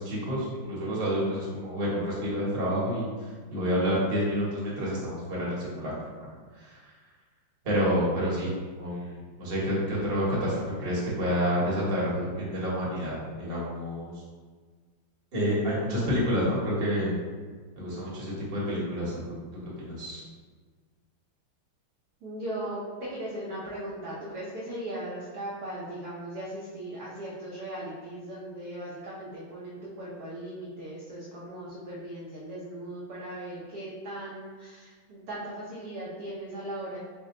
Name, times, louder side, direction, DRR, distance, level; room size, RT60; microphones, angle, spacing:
voice 1, 0.0-3.1 3.5-5.9 6.6-6.8 7.6-14.1 15.3-17.1 17.8-19.1 19.6-20.2, equal, 40° right, -6 dB, 0.9 m, -29 dB
voice 2, 22.2-37.0, right 1 dB, 70° right, -7 dB, 0.9 m, -38 dB
4.1 x 2.1 x 3.6 m, 1.5 s
omnidirectional pair, 2.3 m